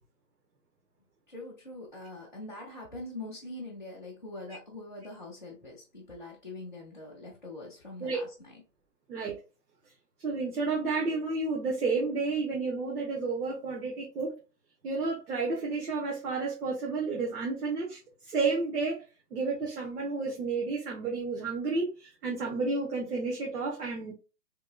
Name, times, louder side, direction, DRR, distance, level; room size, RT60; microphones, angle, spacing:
voice 1, 1.3-8.6, left 2 dB, 35° left, -6 dB, 0.5 m, -43 dB
voice 2, 10.2-14.3 14.8-18.0 18.2-19.1 19.3-24.1, right 4 dB, 70° right, -1 dB, 1.2 m, -31 dB
3.6 x 3.1 x 2.3 m, 0.30 s
hypercardioid pair, 180°, 48 cm